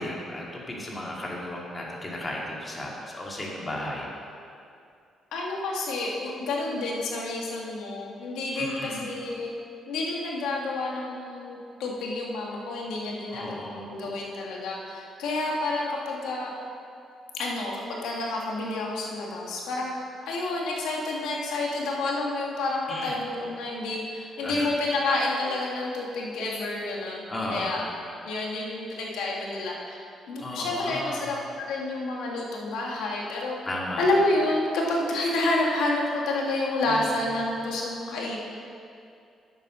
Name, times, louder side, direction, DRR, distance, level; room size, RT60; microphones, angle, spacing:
voice 1, 0.0-4.1 8.5-9.0 13.3-13.9 22.9-23.2 24.4-24.8 27.3-27.8 30.4-31.2 33.6-34.1 36.9-37.0, left 1 dB, 25° left, -3 dB, 2.6 m, -34 dB
voice 2, 5.3-9.5 9.9-16.5 17.3-19.9 20.3-27.8 28.3-30.0 30.3-33.6 34.0-38.4, left 2 dB, 85° left, -2 dB, 2.1 m, -29 dB
10.0 x 8.2 x 6.3 m, 2.5 s
cardioid pair, 90°, 0 cm